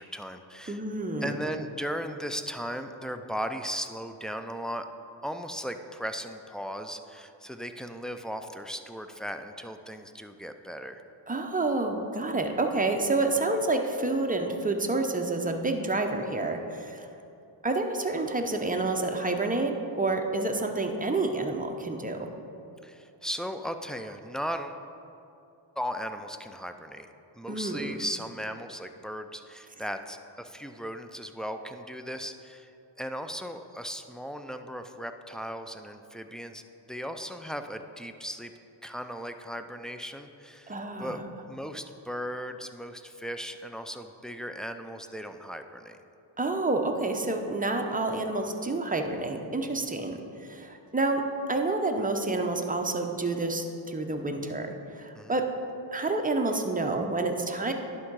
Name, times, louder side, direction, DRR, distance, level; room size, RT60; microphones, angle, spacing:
voice 1, 0.0-0.8 1.2-4.9 5.2-11.0 22.8-24.8 25.8-27.1 27.4-36.6 36.9-38.5 38.8-41.2 41.5-46.0 55.1-55.4, equal, ahead, 7 dB, 0.4 m, -37 dB
voice 2, 0.7-1.4 11.3-17.1 17.6-22.3 27.5-27.9 40.7-41.2 46.4-55.5 55.9-57.7, right 2 dB, 15° right, 4 dB, 0.8 m, -29 dB
11.0 x 3.7 x 4.7 m, 2.7 s
cardioid pair, 45°, 49 cm